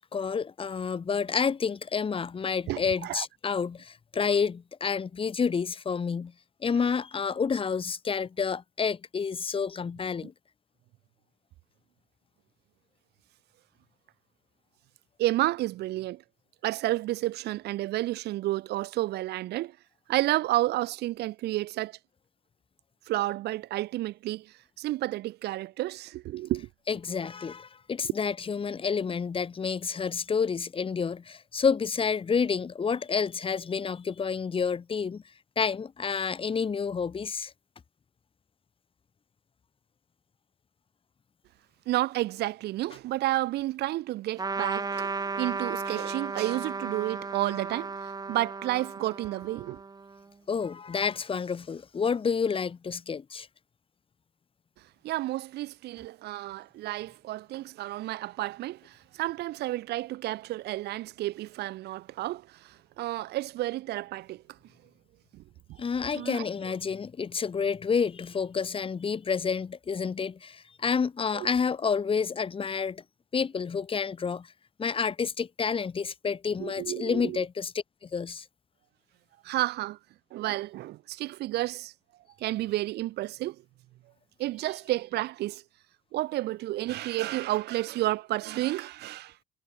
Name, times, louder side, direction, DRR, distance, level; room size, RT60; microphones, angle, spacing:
voice 1, 0.1-6.3 6.6-10.3 26.9-35.2 35.6-37.5 50.5-53.5 65.8-73.0 73.3-74.5 74.8-77.7 78.0-78.4, left 6 dB, 30° left, 3.1 m, -29 dB
voice 2, 2.7-3.2 15.2-16.2 16.6-19.8 20.1-22.0 23.1-26.7 41.8-49.8 55.0-64.4 65.3-65.4 65.7-65.8 66.1-66.5 71.3-71.5 76.6-77.4 79.4-80.0 80.3-81.9 82.4-83.6 84.4-85.6 86.1-89.3, right 16 dB, 75° right, 1.5 m, -31 dB
Trumpet, 44.4-50.2, right 4 dB, 20° right, 2.2 m, -35 dB
cardioid pair, 110°, 17 cm